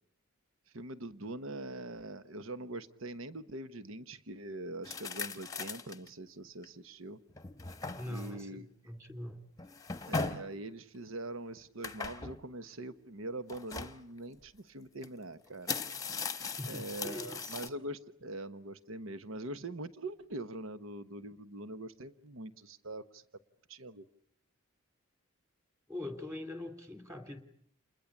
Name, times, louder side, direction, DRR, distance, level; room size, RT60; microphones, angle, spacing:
voice 1, 0.7-7.2 8.1-8.7 10.1-15.8 16.6-23.2 23.7-24.0, right 2 dB, 75° right, 12 dB, 1.1 m, -43 dB
sound 1, 4.8-6.1 6.6-6.7 7.3-8.4 9.6-10.5 11.8-12.4 13.5-14.0 15.0-15.1 15.5-17.7, left 4 dB, 15° left, 1.1 m, -39 dB
voice 2, 8.0-9.4 16.4-17.6 25.9-27.4, left 1 dB, 15° right, 7 dB, 3.0 m, -43 dB
29.0 x 21.0 x 8.5 m, 0.65 s
head